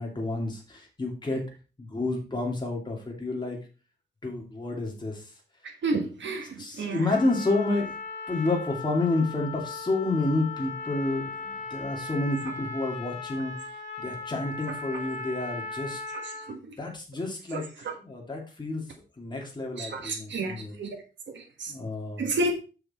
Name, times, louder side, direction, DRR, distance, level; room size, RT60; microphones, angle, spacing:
voice 1, 0.0-1.4 1.8-3.6 4.2-5.2 6.6-7.9 8.3-13.5 14.0-16.0 16.8-17.6 18.0-18.8 19.2-20.7 21.7-22.3, left 2 dB, 25° left, 2.7 m, -30 dB
voice 2, 5.6-7.2 16.1-16.8 17.5-17.9 19.7-21.7 22.2-22.5, right 2 dB, 75° right, 1.6 m, -32 dB
Trumpet, 7.1-16.6, left 4 dB, 40° left, 1.7 m, -38 dB
6.6 x 6.0 x 4.3 m
wide cardioid pair, 120°, 19 cm